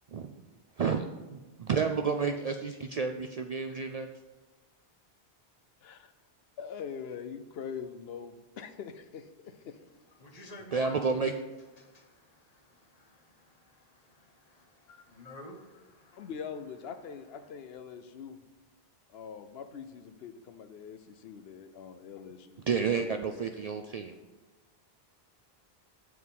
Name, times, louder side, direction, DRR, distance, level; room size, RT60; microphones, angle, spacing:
voice 1, 1.3-4.1 10.7-11.3 22.7-24.2, right 5 dB, 55° right, 0.4 m, -30 dB
voice 2, 5.8-6.1 6.6-9.8 14.9-15.0 16.1-18.4 19.1-23.5, left 7 dB, 75° left, 0.8 m, -43 dB
voice 3, 10.2-11.0 11.6-16.3, left 2 dB, 40° left, 1.1 m, -51 dB
8.1 x 4.8 x 5.4 m
omnidirectional pair, 1.0 m